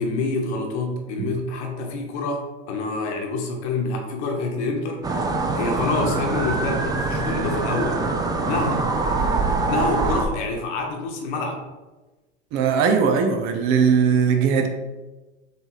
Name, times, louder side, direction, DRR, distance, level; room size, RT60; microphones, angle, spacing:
voice 1, 0.0-5.1 5.5-8.1 8.4-8.9 9.7-11.6, left 3 dB, 70° left, 3 dB, 1.0 m, -27 dB
sound 1, 5.0-10.3, right 3 dB, 10° right, 0.3 m, -24 dB
voice 2, 12.5-14.7, right 6 dB, 50° right, 6 dB, 0.7 m, -19 dB
4.3 x 3.3 x 3.1 m, 1.2 s
hypercardioid pair, 100°, 35 cm